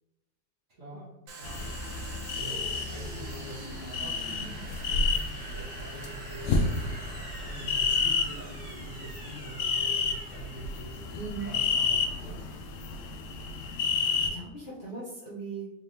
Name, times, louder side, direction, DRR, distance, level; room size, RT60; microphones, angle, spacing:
voice 1, 0.7-2.0 2.4-11.0 11.4-12.5, right 1 dB, 50° right, -5 dB, 1.4 m, -45 dB
Domestic sounds home sounds, 1.3-12.7, right 3 dB, 75° right, 1.3 m, -45 dB
sound 1, 1.4-14.3, left 5 dB, 75° left, 1.1 m, -31 dB
voice 2, 11.2-11.5 13.9-15.7, right 4 dB, 40° left, -8 dB, 0.8 m, -39 dB
4.0 x 3.3 x 2.7 m, 0.94 s
omnidirectional pair, 1.9 m